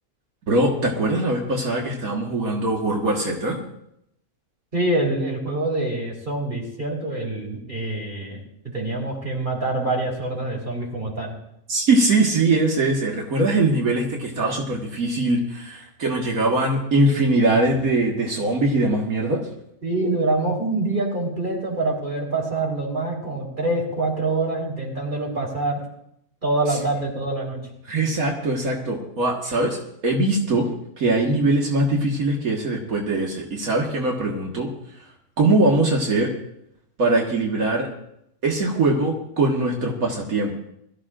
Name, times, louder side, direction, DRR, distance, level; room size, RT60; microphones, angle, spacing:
voice 1, 0.5-3.6 11.7-19.4 26.7-26.8 27.9-29.8 30.0-30.7 31.0-34.7 35.4-36.3 37.0-37.9 38.4-40.5, right 2 dB, 85° right, -1 dB, 2.1 m, -21 dB
voice 2, 4.7-8.4 8.7-11.3 16.9-17.4 19.8-25.8 26.4-27.6, right 2 dB, 35° right, -2 dB, 4.2 m, -25 dB
22.5 x 14.0 x 2.5 m, 0.75 s
omnidirectional pair, 1.5 m